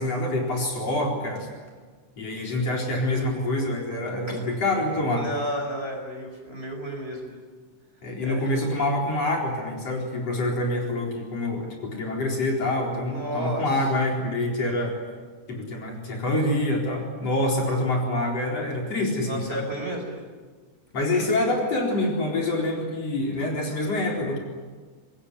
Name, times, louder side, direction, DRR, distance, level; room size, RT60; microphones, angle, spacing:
voice 1, 0.0-1.5 2.2-5.3 8.0-15.0 15.5-19.7 20.9-24.4, left 1 dB, 55° left, 0 dB, 5.3 m, -26 dB
voice 2, 5.2-7.3 8.2-8.5 13.1-13.6 19.3-20.2, right 1 dB, 20° right, 2 dB, 5.1 m, -32 dB
25.5 x 20.5 x 9.9 m, 1.5 s
omnidirectional pair, 3.4 m